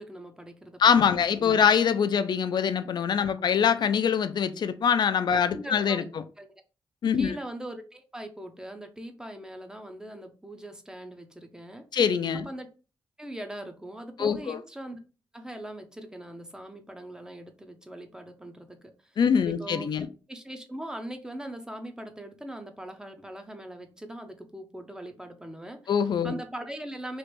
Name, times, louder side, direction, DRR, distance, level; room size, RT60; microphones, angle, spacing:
voice 1, 0.0-0.8 1.1-1.6 5.3-6.0 6.4-6.5 7.2-11.8 12.3-12.7 13.2-15.0 15.3-19.2 19.4-19.9 20.3-25.8 26.2-27.2, right 1 dB, 10° right, 0.6 m, -41 dB
voice 2, 0.8-6.2 7.0-7.4 11.9-12.5 14.2-14.6 19.2-20.1 25.9-26.3, left 7 dB, 60° left, 0.4 m, -24 dB
3.2 x 2.5 x 3.1 m
cardioid pair, 80°, 8 cm